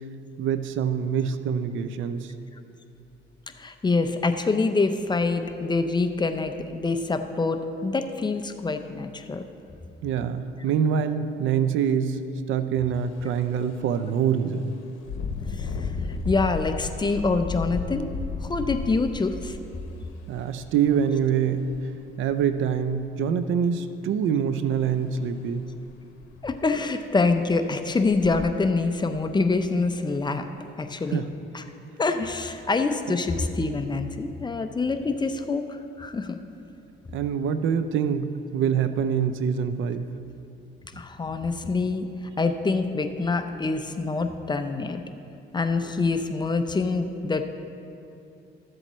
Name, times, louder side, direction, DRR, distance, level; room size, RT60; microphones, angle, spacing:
voice 1, 0.4-2.3 10.0-12.2 12.5-14.7 20.3-21.7 22.2-25.7 31.1-31.3 37.1-40.1, right 7 dB, 80° right, 10 dB, 0.5 m, -25 dB
voice 2, 3.6-9.4 15.5-18.1 18.4-19.6 26.4-30.4 30.8-31.2 31.5-31.6 32.0-36.4 40.9-42.1 42.4-45.0 45.5-47.4, left 3 dB, 20° left, 7 dB, 0.6 m, -26 dB
Engine, 12.9-13.1 13.6-13.8 15.0-20.8 21.7-21.8 22.2-22.9 24.7-24.9 25.2-25.3 25.8-25.9 26.2-26.7 27.3-27.4 28.0-28.4, left 4 dB, 85° left, 0.8 m, -34 dB
13.5 x 7.6 x 3.1 m, 2.7 s
cardioid pair, 90°, 20 cm